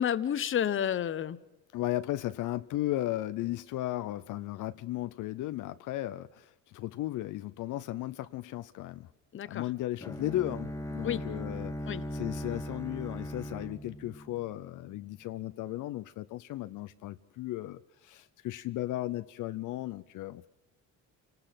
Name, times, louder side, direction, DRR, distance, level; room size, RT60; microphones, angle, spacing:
voice 1, 0.0-1.4 9.3-9.6 11.0-11.2 11.9-12.0, left 9 dB, 40° left, 16 dB, 0.9 m, -30 dB
voice 2, 1.7-9.1 9.5-20.5, left 15 dB, 70° left, 12 dB, 0.7 m, -35 dB
Bowed string instrument, 10.0-15.0, equal, 10° left, 0.7 m, -39 dB
28.0 x 19.0 x 5.9 m, 0.98 s
cardioid pair, 125°, 32 cm